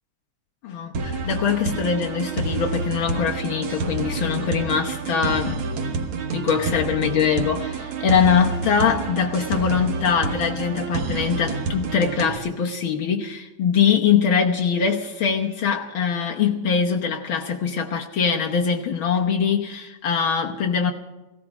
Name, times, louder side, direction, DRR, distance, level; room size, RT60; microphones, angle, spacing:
voice 1, 0.6-5.6 6.3-20.9, left 7 dB, 90° left, 1 dB, 1.1 m, -22 dB
sound 1, 0.9-12.4, right 4 dB, 60° right, 1.4 m, -28 dB
17.5 x 16.5 x 4.8 m, 1.1 s
omnidirectional pair, 3.8 m